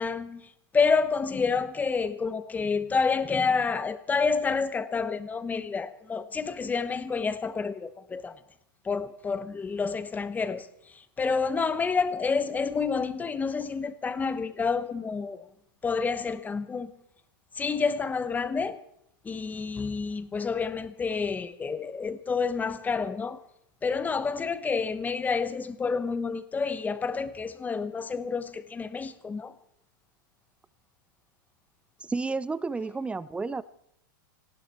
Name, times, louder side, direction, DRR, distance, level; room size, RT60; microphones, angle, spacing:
voice 1, 0.0-8.4 8.8-15.5 15.8-16.9 17.5-18.8 19.2-23.4 23.8-29.5, left 5 dB, 15° left, 1.0 m, -29 dB
voice 2, 32.0-33.6, right 4 dB, 10° right, 0.6 m, -31 dB
19.0 x 16.0 x 4.4 m
hypercardioid pair, 125°, 12 cm